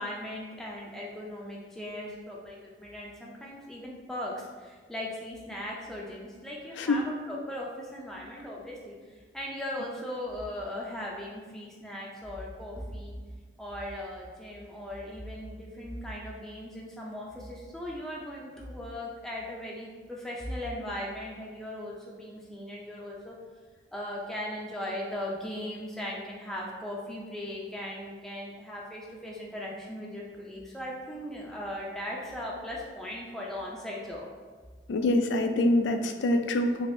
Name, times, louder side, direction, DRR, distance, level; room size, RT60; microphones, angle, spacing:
voice 1, 0.0-9.0 9.3-13.1 13.6-23.4 23.9-34.3, left 1 dB, ahead, -4 dB, 0.3 m, -38 dB
voice 2, 34.9-36.9, left 1 dB, 90° left, 6 dB, 0.3 m, -25 dB
3.3 x 3.3 x 2.6 m, 1.4 s
head